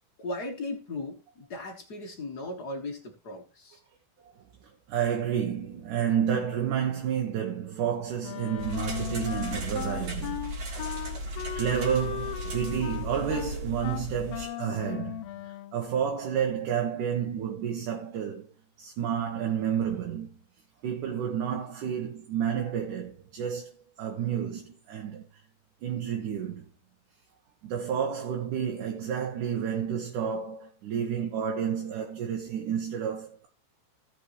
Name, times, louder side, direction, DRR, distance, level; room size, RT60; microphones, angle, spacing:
voice 1, 0.2-3.8, left 2 dB, 40° left, 1.6 m, -37 dB
voice 2, 4.9-10.4 11.5-15.3 15.7-18.5 18.8-20.4 20.8-25.2 25.8-26.7 27.6-33.5, right 8 dB, 75° right, 2.9 m, -30 dB
Wind instrument woodwind instrument, 8.2-15.8, left 12 dB, 90° left, 1.4 m, -37 dB
sound 1, 8.6-14.5, equal, 60° right, 3.6 m, -36 dB
17.0 x 6.4 x 3.2 m
omnidirectional pair, 3.7 m